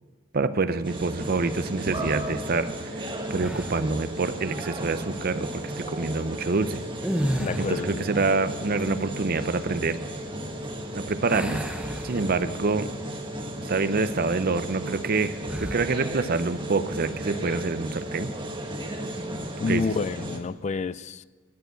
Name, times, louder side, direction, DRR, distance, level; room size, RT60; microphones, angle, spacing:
voice 1, 0.3-6.8 7.6-10.0 10.9-11.6 12.0-12.9 13.6-18.3 19.7-19.8, right 3 dB, 45° right, 13 dB, 0.6 m, -26 dB
sound 1, 0.8-20.4, right 1 dB, 25° right, 1.3 m, -35 dB
sound 2, 3.4-4.0 6.9-8.0 11.3-12.7 13.2-13.4 15.4-15.9, equal, 5° right, 0.9 m, -31 dB
voice 2, 7.4-8.1 19.6-21.2, left 4 dB, 35° left, 17 dB, 0.3 m, -29 dB
16.0 x 6.9 x 9.2 m, 1.3 s
head